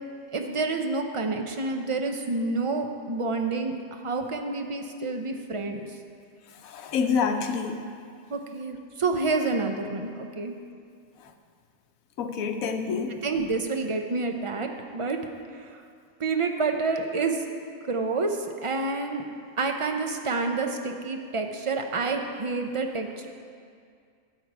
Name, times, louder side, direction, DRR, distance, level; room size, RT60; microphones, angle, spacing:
voice 1, 0.3-5.9 8.3-10.5 13.2-15.2 15.5-15.8 16.2-17.4 17.9-19.2 19.6-23.3, right 3 dB, 35° right, 4 dB, 0.5 m, -28 dB
voice 2, 6.6-7.8 12.2-13.2, left 6 dB, 85° left, 6 dB, 1.2 m, -27 dB
12.5 x 7.6 x 4.8 m, 2.2 s
omnidirectional pair, 1.4 m